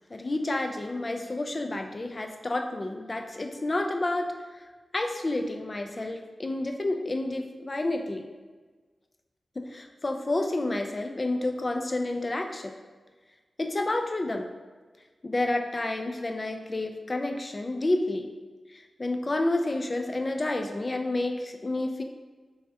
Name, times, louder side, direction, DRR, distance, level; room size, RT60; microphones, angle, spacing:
voice 1, 0.1-4.3 4.9-8.3 9.6-12.7 13.6-14.5 15.2-18.3 18.7-22.0, left 2 dB, 35° left, 5 dB, 0.4 m, -30 dB
5.4 x 3.4 x 2.8 m, 1.4 s
wide cardioid pair, 125°, 0 cm